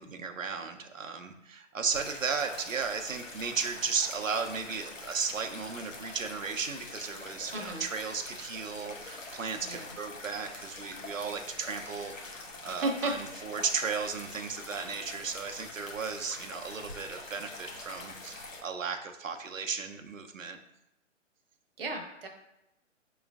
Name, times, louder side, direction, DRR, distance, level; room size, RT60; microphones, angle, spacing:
voice 1, 0.0-20.6, right 5 dB, 85° right, 5 dB, 0.6 m, -35 dB
sound 1, 1.9-18.6, left 2 dB, 85° left, 0.9 m, -45 dB
voice 2, 7.5-7.9 9.6-9.9 12.6-13.1 21.8-22.3, right 2 dB, 50° right, 3 dB, 0.7 m, -34 dB
4.8 x 3.1 x 2.3 m, 0.89 s
figure-of-eight pair, 140°, 38 cm